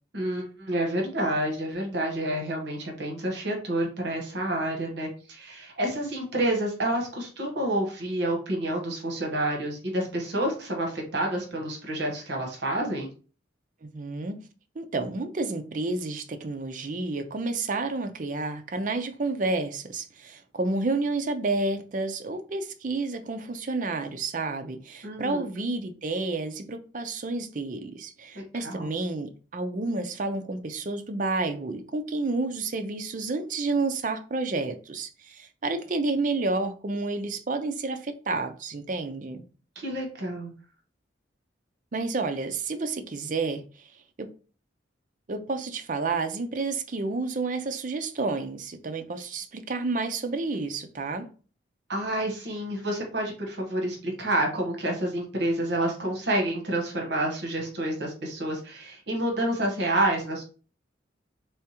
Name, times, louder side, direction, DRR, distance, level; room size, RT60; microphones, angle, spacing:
voice 1, 0.1-13.1 25.0-25.4 28.3-28.9 39.8-40.5 51.9-60.4, right 1 dB, 65° right, 1.1 m, -29 dB
voice 2, 13.8-14.4 14.8-39.4 41.9-43.9 44.2-44.3 45.3-51.3, right 3 dB, 45° right, 0.5 m, -30 dB
3.5 x 3.4 x 2.9 m
head